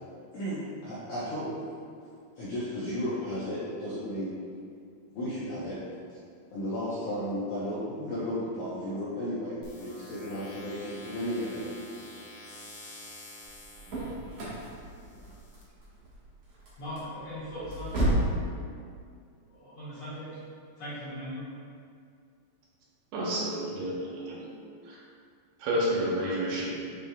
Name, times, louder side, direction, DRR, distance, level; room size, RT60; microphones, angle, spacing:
voice 1, 0.3-1.5 2.4-4.4 5.1-5.8 6.5-11.6, equal, 75° left, -10 dB, 1.8 m, -34 dB
sound 1, 9.6-15.6, left 1 dB, 90° left, 2.9 m, -48 dB
sound 2, 13.5-18.4, right 1 dB, 55° right, 2.0 m, -32 dB
voice 2, 16.8-18.1 19.5-20.4 20.8-21.5, equal, 55° left, -12 dB, 1.9 m, -39 dB
voice 3, 23.1-24.5 24.8-25.0 25.6-26.8, equal, 75° right, -4 dB, 2.5 m, -30 dB
7.8 x 5.3 x 2.3 m, 2.3 s
omnidirectional pair, 4.7 m